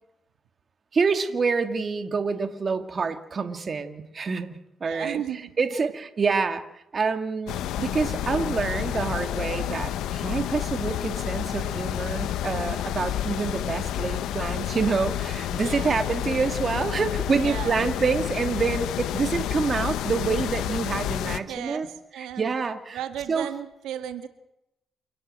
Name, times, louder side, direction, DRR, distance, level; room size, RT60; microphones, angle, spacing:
voice 1, 0.9-4.6 4.8-21.9 22.2-23.0 23.3-23.5, right 5 dB, 40° right, 8 dB, 2.2 m, -27 dB
voice 2, 4.8-5.9 15.6-15.9 16.3-16.4 17.4-17.8 21.5-22.5 22.9-24.3, right 10 dB, 85° right, 8 dB, 1.8 m, -35 dB
sound 1, 7.5-21.4, left 11 dB, 85° left, 1.1 m, -30 dB
28.5 x 12.0 x 8.9 m, 0.85 s
cardioid pair, 90°, 0 cm